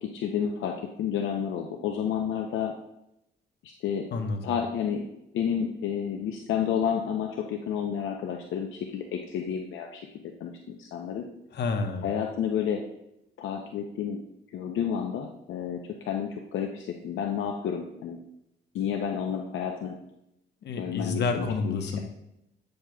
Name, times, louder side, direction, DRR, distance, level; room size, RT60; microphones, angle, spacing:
voice 1, 0.0-2.7 3.6-4.1 4.4-5.0 5.3-10.0 10.4-11.2 12.0-12.8 13.4-14.2 14.5-18.2 18.7-19.9 20.7-22.0, left 8 dB, 75° left, 2 dB, 0.6 m, -30 dB
voice 2, 4.1-4.5 11.5-12.1 20.6-22.0, left 4 dB, 60° left, 5 dB, 1.0 m, -29 dB
8.6 x 6.5 x 2.3 m, 0.83 s
cardioid pair, 90°, 20 cm